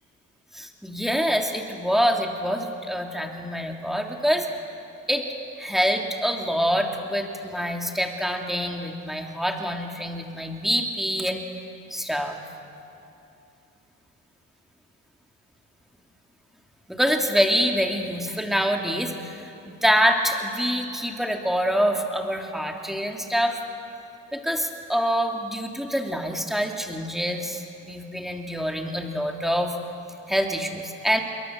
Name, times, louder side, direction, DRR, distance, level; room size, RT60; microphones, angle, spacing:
voice 1, 0.5-4.5 5.1-5.2 5.6-11.4 11.9-12.4 16.9-23.6 24.3-29.7 30.3-31.2, equal, ahead, 2 dB, 2.9 m, -25 dB
27.5 x 22.5 x 7.6 m, 2.8 s
cardioid pair, 90°, 30 cm